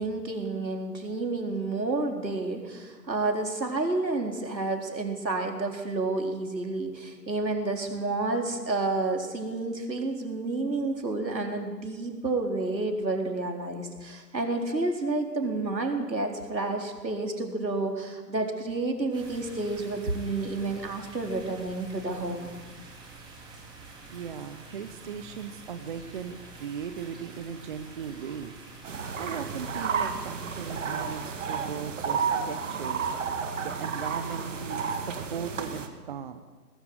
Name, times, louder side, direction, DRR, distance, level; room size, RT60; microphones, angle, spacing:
voice 1, 0.0-22.5, right 2 dB, 85° right, 3 dB, 4.3 m, -30 dB
sound 1, 19.1-31.3, right 3 dB, 10° right, 3.2 m, -47 dB
voice 2, 24.1-28.5 29.2-33.1 33.6-36.4, right 7 dB, 30° right, 9 dB, 1.0 m, -38 dB
sound 2, 28.8-35.9, right 6 dB, 45° right, 2.3 m, -32 dB
20.0 x 14.0 x 9.8 m, 1.4 s
figure-of-eight pair, 145°, 50 cm